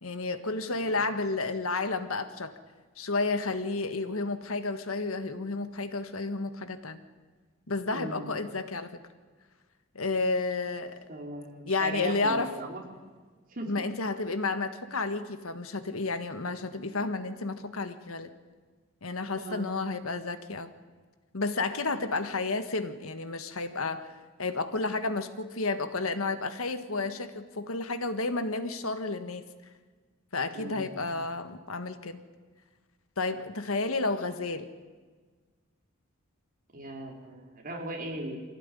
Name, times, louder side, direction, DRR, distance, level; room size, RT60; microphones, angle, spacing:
voice 1, 0.0-2.5 3.0-7.0 7.7-8.9 9.9-11.0 11.7-12.5 13.7-18.3 19.0-20.7 21.3-29.4 30.3-32.2 33.2-34.7, left 3 dB, 80° left, 10 dB, 1.5 m, -31 dB
voice 2, 7.9-8.3 11.1-12.8 13.5-13.7 19.4-19.7 30.5-30.9 36.7-38.4, right 1 dB, 40° right, 0 dB, 4.4 m, -38 dB
24.5 x 16.0 x 9.8 m, 1.5 s
head